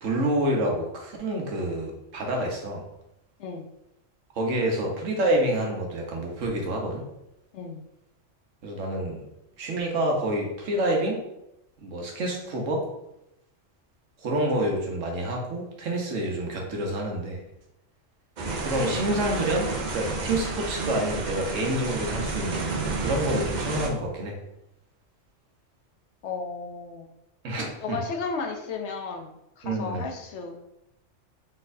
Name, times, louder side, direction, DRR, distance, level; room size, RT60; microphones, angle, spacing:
voice 1, 0.0-2.8 4.4-7.0 8.6-9.2 9.6-11.2 11.8-12.9 14.2-17.4 18.6-24.4 27.4-28.0 29.6-30.1, right 1 dB, 75° right, 0 dB, 1.3 m, -28 dB
sound 1, 18.4-23.9, right 3 dB, 45° right, 0.6 m, -30 dB
voice 2, 26.2-27.1 27.8-30.6, left 4 dB, 70° left, 3 dB, 0.9 m, -34 dB
4.2 x 4.0 x 2.6 m, 0.85 s
omnidirectional pair, 1.3 m